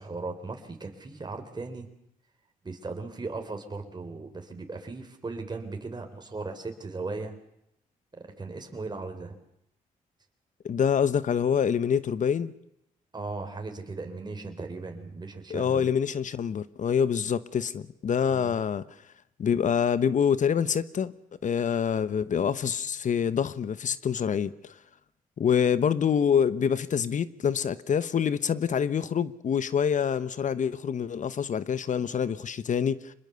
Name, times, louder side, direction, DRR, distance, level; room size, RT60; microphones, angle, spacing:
voice 1, 0.0-1.9 2.6-7.4 8.1-9.4 13.1-15.9 18.3-18.5, right 3 dB, 30° right, 4.0 m, -37 dB
voice 2, 10.6-12.5 15.5-18.8 19.4-21.1 21.4-24.8 25.4-33.1, left 7 dB, 55° left, 1.1 m, -26 dB
26.0 x 21.0 x 7.0 m
cardioid pair, 70°, 15 cm